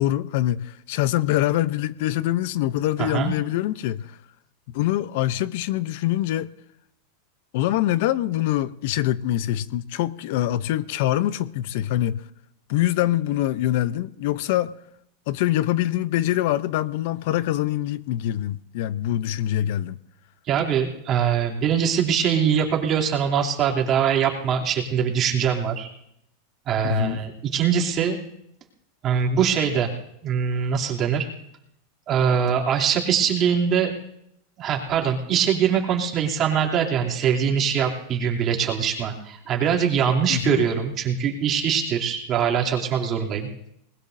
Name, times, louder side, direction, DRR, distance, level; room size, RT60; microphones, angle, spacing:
voice 1, 0.0-4.2 4.7-6.5 7.5-12.2 12.7-14.7 15.3-20.0 26.8-27.2 40.3-40.7, left 13 dB, 65° left, 0.6 m, -24 dB
voice 2, 3.0-3.3 20.5-25.9 26.6-28.2 29.0-29.9 30.2-31.3 32.1-33.9 34.6-43.5, right 7 dB, 35° right, 2.9 m, -22 dB
20.5 x 20.5 x 2.7 m
supercardioid pair, 130°, 0 cm